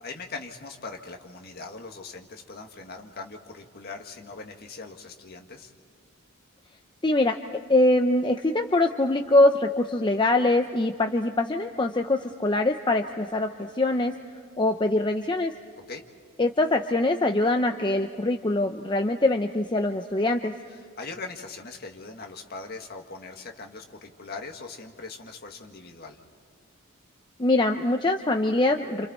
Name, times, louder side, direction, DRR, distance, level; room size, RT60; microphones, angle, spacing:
voice 1, 0.0-5.7 15.8-16.0 21.0-26.2, left 3 dB, 45° left, 3 dB, 1.8 m, -40 dB
voice 2, 7.0-7.4 7.7-14.1 14.6-15.5 16.4-20.5 27.4-29.1, left 2 dB, 20° left, 4 dB, 0.6 m, -23 dB
30.0 x 28.0 x 4.3 m, 2.2 s
head